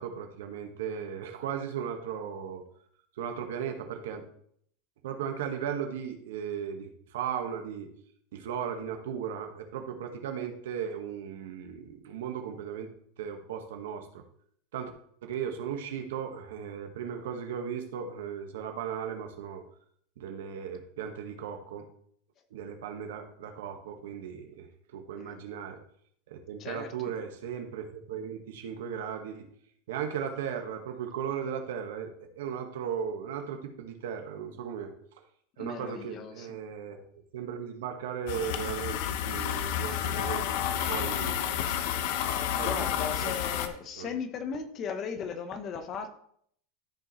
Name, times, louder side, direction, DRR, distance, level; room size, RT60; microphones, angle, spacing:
voice 1, 0.0-2.6 3.2-4.2 5.0-7.9 8.3-12.9 13.2-14.2 14.7-14.9 15.2-19.6 20.2-21.9 22.5-25.8 26.3-29.5 29.9-32.1 32.3-34.9 35.6-37.0 37.3-40.5 40.9-41.7 42.6-43.3 44.0-44.1, right 8 dB, 80° right, 4 dB, 1.4 m, -36 dB
voice 2, 26.6-27.1 35.6-36.5 42.5-46.2, left 6 dB, 30° left, 9 dB, 0.9 m, -37 dB
sound 1, 38.3-43.7, left 10 dB, 55° left, 0.7 m, -30 dB
13.5 x 5.2 x 3.1 m, 0.66 s
supercardioid pair, 165°, 0 cm